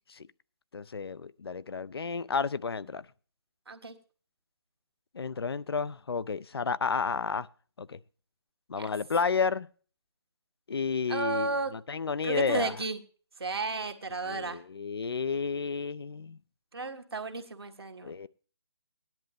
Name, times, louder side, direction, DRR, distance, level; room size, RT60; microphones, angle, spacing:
voice 1, 0.7-3.1 5.1-7.5 7.8-8.0 8.7-9.7 10.7-12.8 14.2-16.4 18.0-18.3, left 5 dB, 65° left, 0.5 m, -31 dB
voice 2, 11.1-11.7 12.2-13.0 13.4-14.6 16.7-18.1, right 3 dB, 65° right, 1.6 m, -33 dB
18.0 x 10.5 x 3.2 m
figure-of-eight pair, 140°, 14 cm